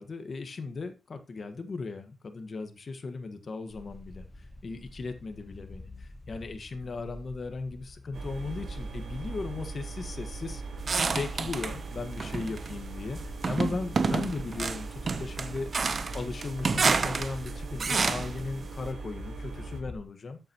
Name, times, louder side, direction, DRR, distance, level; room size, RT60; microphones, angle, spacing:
voice 1, 0.0-4.2 4.6-10.6 11.0-15.7 16.1-20.4, left 3 dB, 35° left, 1.5 m, -37 dB
sound 1, 3.7-20.0, left 2 dB, 20° left, 1.2 m, -47 dB
sound 2, 8.1-19.8, right 4 dB, 75° right, 4.0 m, -40 dB
sound 3, 10.9-11.8 12.2-12.8 13.4-18.4, right 4 dB, 35° right, 0.8 m, -29 dB
13.0 x 8.1 x 3.0 m
wide cardioid pair, 155°, 0 cm